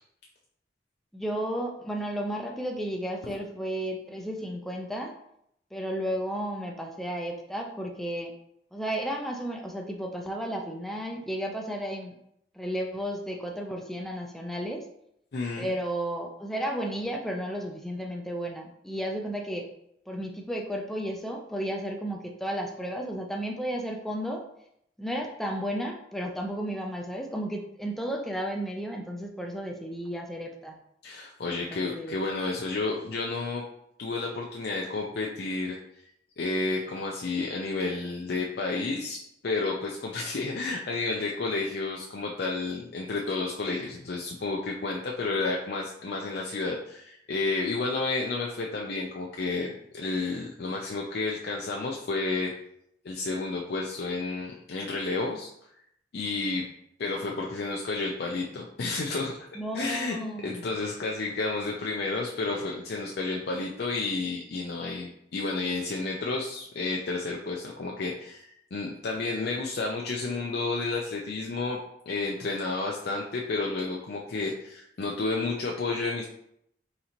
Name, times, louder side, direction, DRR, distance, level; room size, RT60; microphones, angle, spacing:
voice 1, 1.1-5.1 5.7-8.3 8.7-12.2 12.5-14.8 15.6-19.7 20.1-24.4 25.0-30.8 31.5-32.2 59.5-60.6, equal, ahead, 1 dB, 0.4 m, -33 dB
voice 2, 15.3-15.7 31.0-33.6 34.0-35.8 36.4-52.5 53.0-55.5 56.1-56.6 57.0-59.3 59.7-60.2 60.4-71.8 72.1-76.2, left 3 dB, 60° left, -1 dB, 0.5 m, -31 dB
4.3 x 3.8 x 2.8 m, 0.75 s
head